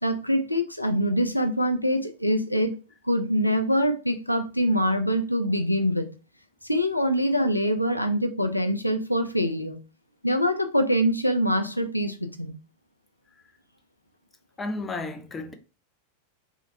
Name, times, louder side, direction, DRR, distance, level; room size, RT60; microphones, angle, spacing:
voice 1, 0.0-2.8 3.0-6.1 6.7-9.8 10.2-12.6, equal, 90° left, 0.3 m, -24 dB
voice 2, 14.6-15.5, left 2 dB, 15° left, 0.5 m, -32 dB
3.1 x 2.4 x 2.7 m
figure-of-eight pair, 90°, 0 cm